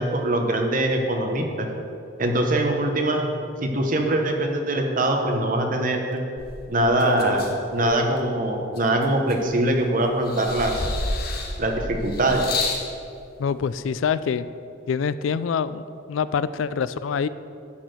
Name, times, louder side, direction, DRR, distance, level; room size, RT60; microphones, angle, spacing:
voice 1, 0.0-1.7 2.2-3.3 3.6-6.2 6.7-10.8 11.6-12.4, right 1 dB, 45° right, 3 dB, 1.0 m, -23 dB
sound 1, 6.4-8.2 8.8-9.8 10.3-12.9 13.8-13.9, left 2 dB, 50° left, 1.1 m, -30 dB
voice 2, 13.4-14.5 14.9-17.3, left 6 dB, 85° left, 15 dB, 0.3 m, -25 dB
11.5 x 4.3 x 7.8 m, 2.6 s
head